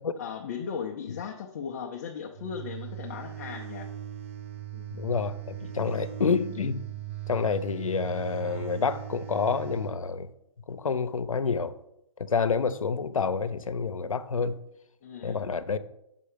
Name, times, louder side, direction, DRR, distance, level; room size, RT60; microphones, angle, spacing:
voice 1, 0.2-3.9 4.7-4.9 15.0-15.5, left 7 dB, 30° left, 1 dB, 0.6 m, -37 dB
sound 1, 2.3-10.0, right 11 dB, 25° right, 0.3 m, -39 dB
voice 2, 4.9-6.8 7.3-10.3 10.7-11.8 12.2-14.6 15.2-15.8, left 5 dB, 90° left, 12 dB, 0.7 m, -28 dB
6.8 x 5.6 x 5.0 m, 0.81 s
hypercardioid pair, 155°, 17 cm